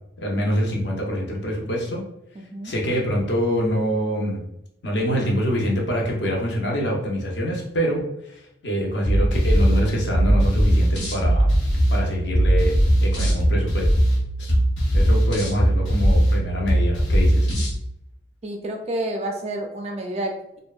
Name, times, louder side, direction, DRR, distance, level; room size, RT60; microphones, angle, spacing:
voice 1, 0.2-2.0 2.6-4.5 4.8-11.5 11.9-12.8 13.0-13.9 14.4-14.5 14.9-17.5, equal, 60° left, -1 dB, 0.6 m, -25 dB
voice 2, 2.4-2.7 18.4-20.6, right 1 dB, 35° right, 3 dB, 0.3 m, -29 dB
sound 1, 9.0-17.8, right 1 dB, 85° left, 0.9 m, -19 dB
2.7 x 2.1 x 2.3 m, 0.81 s
head